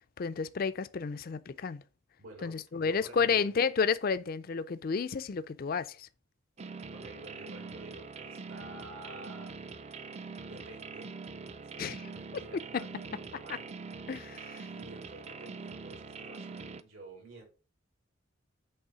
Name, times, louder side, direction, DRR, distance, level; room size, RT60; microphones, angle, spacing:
voice 1, 0.2-1.8 2.4-6.1 11.8-12.0 12.7-12.8 14.1-14.6, left 5 dB, 45° left, 0.4 m, -31 dB
voice 2, 2.2-3.5 6.9-9.5 10.4-11.2 11.7-13.7 14.7-17.4, right 2 dB, 85° right, 3.5 m, -50 dB
sound 1, 6.6-16.8, right 4 dB, 30° right, 0.4 m, -44 dB
8.1 x 3.4 x 4.9 m
head